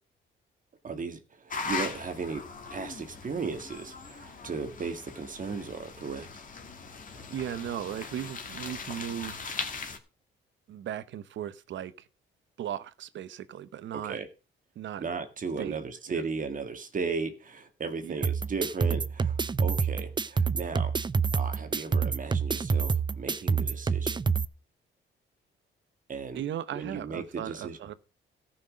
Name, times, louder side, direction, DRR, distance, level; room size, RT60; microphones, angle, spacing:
voice 1, 0.8-2.5 2.7-6.4 13.9-14.3 15.0-21.0 21.4-24.2 26.1-26.4 26.8-27.8, right 4 dB, 40° right, 2.0 m, -36 dB
sound 1, 1.5-10.0, left 4 dB, 40° left, 2.4 m, -39 dB
voice 2, 7.1-9.6 10.7-12.1 12.6-14.2 14.8-15.0 15.6-15.8 16.1-16.2 18.0-18.2 26.3-27.9, right 10 dB, 70° right, 0.9 m, -37 dB
sound 2, 18.2-24.4, right 5 dB, 25° right, 0.6 m, -27 dB
14.0 x 6.2 x 6.3 m
cardioid pair, 90°, 20 cm